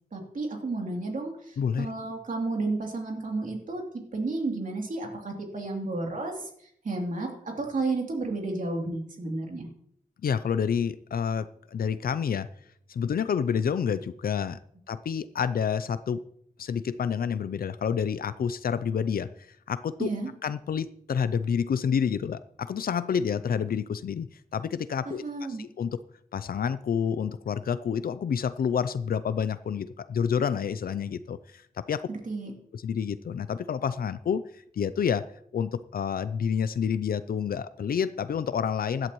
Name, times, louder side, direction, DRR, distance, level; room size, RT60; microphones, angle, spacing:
voice 1, 0.1-3.8 4.1-6.5 6.8-7.3 7.6-9.7 20.0-20.3 25.1-25.6 32.1-32.5, right 3 dB, 60° right, 0 dB, 2.9 m, -32 dB
voice 2, 1.6-1.9 10.2-12.5 12.9-14.6 14.9-16.2 16.6-20.1 20.4-25.2 25.5-26.0 26.3-32.1 32.7-35.3 35.5-39.1, left 7 dB, 90° left, 13 dB, 0.5 m, -29 dB
16.5 x 11.5 x 3.1 m, 0.68 s
wide cardioid pair, 105°, 15 cm